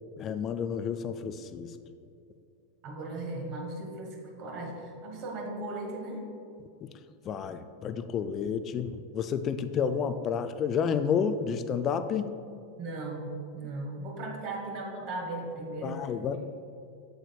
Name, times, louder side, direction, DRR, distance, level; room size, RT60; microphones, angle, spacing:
voice 1, 0.2-1.7 6.8-6.9 7.2-12.3 15.8-16.4, left 7 dB, 30° left, 11 dB, 0.4 m, -30 dB
voice 2, 2.8-6.2 12.8-16.1, right 2 dB, 40° right, 1 dB, 1.4 m, -37 dB
8.0 x 7.9 x 2.3 m, 2.6 s
figure-of-eight pair, 90°, 0 cm